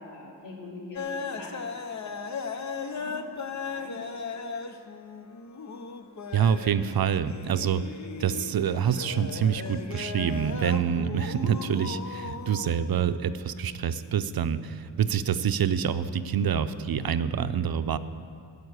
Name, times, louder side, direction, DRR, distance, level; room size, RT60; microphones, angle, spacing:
voice 1, 0.0-3.2 3.5-4.2, left 2 dB, 90° left, -4 dB, 3.1 m, -45 dB
sound 1, 1.0-12.7, left 5 dB, 40° left, 0.8 m, -37 dB
voice 2, 6.3-7.8 8.2-18.0, right 8 dB, 60° right, 12 dB, 0.6 m, -26 dB
11.0 x 8.0 x 8.1 m, 2.3 s
cardioid pair, 70°, 42 cm